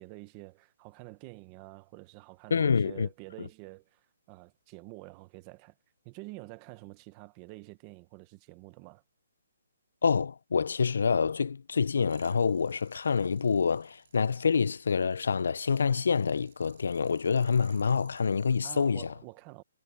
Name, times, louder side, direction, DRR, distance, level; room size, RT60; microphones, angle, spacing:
voice 1, 0.0-5.8 6.0-9.0 18.6-19.6, right 22 dB, 20° right, 1.0 m, -48 dB
voice 2, 2.5-3.1 10.0-19.0, left 5 dB, 70° left, 0.6 m, -27 dB
sound 1, 12.1-18.9, right 9 dB, 40° right, 4.9 m, -62 dB
hypercardioid pair, 175°, 0 cm